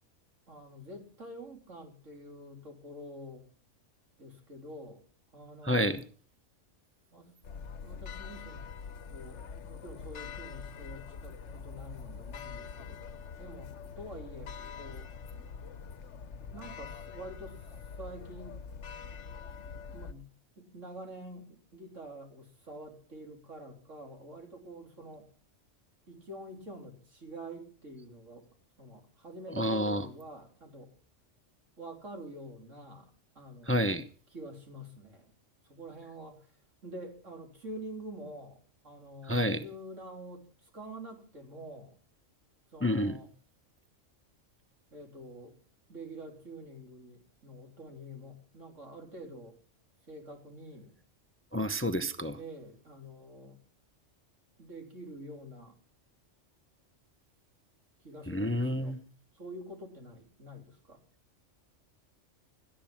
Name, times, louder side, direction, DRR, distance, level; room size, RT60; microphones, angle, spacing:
voice 1, 0.5-3.5 4.2-5.0 5.3-5.8 7.1-7.4 7.8-8.7 9.1-13.0 13.4-15.1 16.5-18.6 19.7-20.3 20.6-25.3 26.1-28.5 28.8-30.9 31.8-33.9 34.3-35.3 35.6-36.6 36.8-42.0 42.7-43.3 44.9-45.6 45.9-49.6 50.1-50.9 52.4-53.6 54.6-55.8 58.0-59.0 59.3-61.0, right 1 dB, 75° right, 3 dB, 3.8 m, -47 dB
voice 2, 5.6-6.0 29.5-30.1 33.7-34.0 39.3-39.6 42.8-43.2 51.5-52.4 58.3-59.0, equal, 10° left, 10 dB, 0.8 m, -29 dB
sound 1, 7.4-20.1, left 6 dB, 65° left, 1.2 m, -44 dB
18.0 x 13.0 x 5.9 m, 0.43 s
omnidirectional pair, 1.3 m